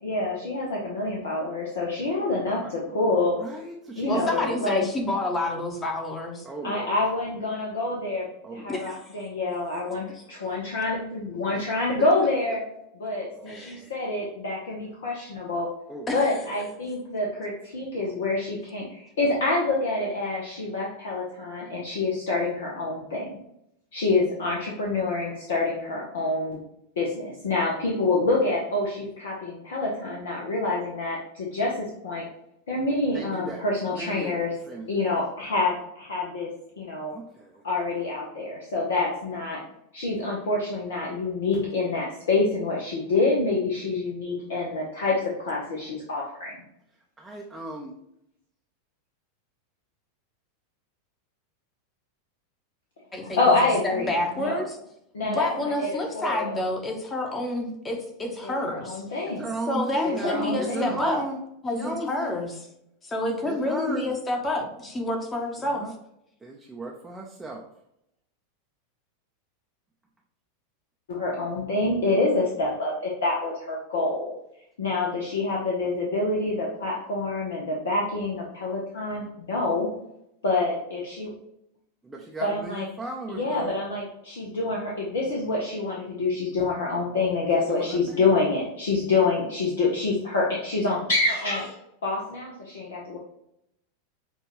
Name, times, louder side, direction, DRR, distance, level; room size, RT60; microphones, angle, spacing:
voice 1, 0.0-3.4 4.0-4.8 6.6-8.2 8.5-12.6 12.9-15.7 16.1-23.3 23.9-26.6 27.0-32.2 32.7-34.5 34.9-36.5 36.8-37.1 37.6-39.6 39.9-45.2 45.4-46.5 53.4-54.6 55.1-55.9 56.1-56.6 58.4-59.5 60.0-61.0 71.1-74.3 74.8-79.9 80.4-81.3 82.4-82.8 83.3-91.7 92.0-93.2, left 3 dB, 65° left, -3 dB, 0.9 m, -27 dB
voice 2, 3.4-4.5 6.4-6.9 8.4-8.7 9.9-10.0 11.5-11.7 13.4-13.9 15.9-16.1 16.3-16.8 33.1-33.6 33.9-34.4 34.7-35.1 37.1-37.6 47.2-48.0 54.0-54.2 59.2-61.4 61.7-62.3 63.4-64.1 65.6-65.9 66.4-67.7 82.1-83.8 87.6-88.2, right 2 dB, 10° right, -1 dB, 0.6 m, -36 dB
voice 3, 4.1-6.5 8.7-9.0 10.1-10.2 13.5-13.8 16.1-16.2 53.1-54.8 55.2-59.0 59.7-61.2 61.6-62.5 63.0-65.9, left 1 dB, 20° left, 2 dB, 1.0 m, -29 dB
6.5 x 2.5 x 3.0 m, 0.79 s
figure-of-eight pair, 90°, 0 cm